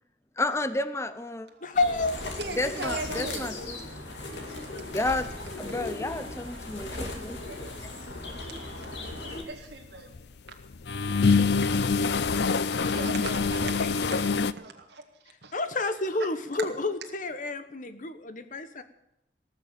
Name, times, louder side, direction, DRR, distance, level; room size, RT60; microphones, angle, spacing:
voice 1, 0.4-1.5 2.5-3.8 4.9-5.3 5.6-7.4 7.8-7.9, left 2 dB, 15° left, 12 dB, 0.7 m, -31 dB
voice 2, 1.6-2.3 13.8-13.9 15.5-18.8, left 3 dB, 45° left, 10 dB, 1.1 m, -30 dB
sound 1, 1.7-9.4, left 2 dB, 85° left, 2.6 m, -37 dB
voice 3, 2.4-3.5 7.5-7.7 8.4-10.1 12.3-15.0 15.4-15.5 16.2-16.3, right 2 dB, 70° right, 3 dB, 1.9 m, -39 dB
sound 2, 8.1-8.4 8.9-10.2 10.6-14.5, left 4 dB, 70° left, 0.5 m, -25 dB
18.0 x 6.9 x 9.0 m, 0.85 s
head